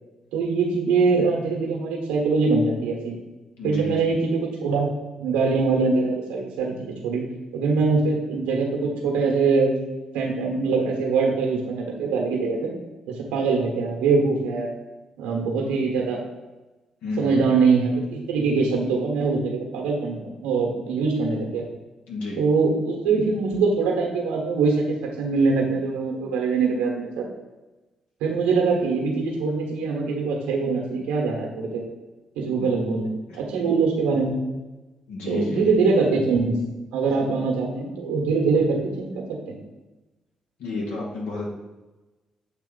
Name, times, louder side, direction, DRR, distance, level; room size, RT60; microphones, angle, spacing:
voice 1, 0.3-3.1 3.6-4.9 5.2-7.2 7.5-9.8 10.1-12.7 13.1-14.7 15.2-16.2 17.2-21.6 22.4-27.3 28.2-31.8 32.3-34.4 35.2-36.6 36.9-39.6, right 4 dB, 80° right, 0 dB, 1.1 m, -23 dB
voice 2, 3.6-4.1 17.0-17.4 22.1-22.4 32.6-32.7 33.2-33.4 35.1-35.7 40.6-41.4, left 2 dB, 75° left, -3 dB, 1.6 m, -31 dB
8.0 x 2.9 x 4.0 m, 1.1 s
hypercardioid pair, 45°, 2 cm